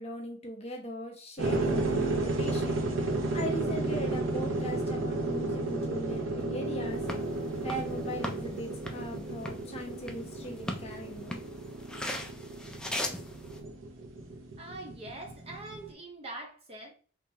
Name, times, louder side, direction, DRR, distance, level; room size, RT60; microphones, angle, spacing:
voice 1, 0.0-2.8 3.3-7.0 7.6-11.4, equal, 35° left, 0.9 m, -39 dB
sound 1, 1.4-15.9, right 2 dB, 85° right, 0.7 m, -33 dB
sound 2, 6.9-13.6, left 1 dB, 5° left, 0.4 m, -40 dB
voice 2, 14.6-16.9, right 2 dB, 30° right, 0.7 m, -43 dB
3.6 x 2.8 x 2.8 m
head